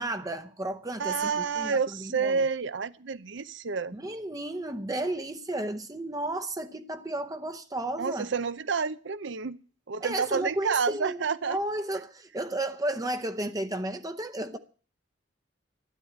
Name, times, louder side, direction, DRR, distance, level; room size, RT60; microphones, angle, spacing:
voice 1, 0.0-2.4 3.9-8.3 10.0-14.6, right 1 dB, 20° right, 0.8 m, -33 dB
voice 2, 1.0-4.0 8.0-9.6 9.9-11.6, right 5 dB, 70° right, 0.7 m, -29 dB
13.0 x 10.5 x 8.6 m
head